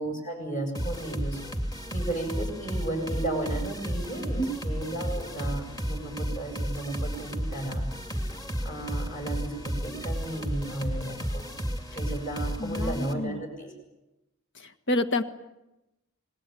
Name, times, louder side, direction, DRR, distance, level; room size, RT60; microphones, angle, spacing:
voice 1, 0.0-1.4 1.9-7.9 8.6-11.4 11.9-13.7, right 2 dB, 35° left, 3 dB, 7.8 m, -34 dB
sound 1, 0.7-13.1, equal, 20° left, 2.3 m, -33 dB
voice 2, 12.6-13.4 14.5-15.2, left 1 dB, 60° left, 9 dB, 1.6 m, -29 dB
27.0 x 20.0 x 9.3 m, 0.96 s
head